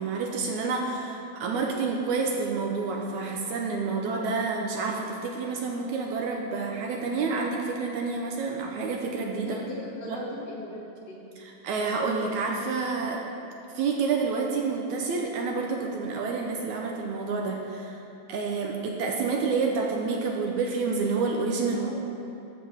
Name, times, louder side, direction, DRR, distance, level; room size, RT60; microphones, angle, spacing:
voice 1, 0.0-9.6 10.1-10.2 11.4-13.2 13.7-18.0 18.3-21.9, right 4 dB, 75° right, 1 dB, 2.0 m, -29 dB
voice 2, 9.4-10.8 11.1-11.2 21.7-21.9, left 1 dB, 55° left, -6 dB, 2.9 m, -38 dB
14.0 x 5.2 x 6.3 m, 2.8 s
omnidirectional pair, 3.7 m